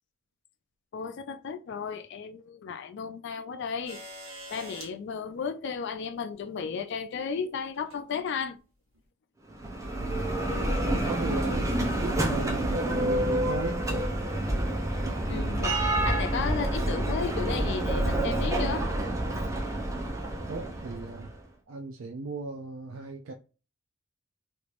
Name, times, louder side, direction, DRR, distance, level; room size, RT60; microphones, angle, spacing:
voice 1, 0.9-4.0 4.5-8.6 15.3-18.9, left 6 dB, 55° left, 0.3 m, -34 dB
sound 1, 3.9-4.9 6.3-6.4 7.7-8.0 8.9-9.0, right 1 dB, 80° right, 1.4 m, -44 dB
Bell, 9.5-21.3, right 1 dB, 15° right, 0.5 m, -28 dB
voice 2, 10.0-10.4 11.0-13.9 15.3-15.6 20.5-21.3 21.7-23.3, right 3 dB, 65° right, 0.4 m, -36 dB
3.2 x 3.0 x 2.5 m
head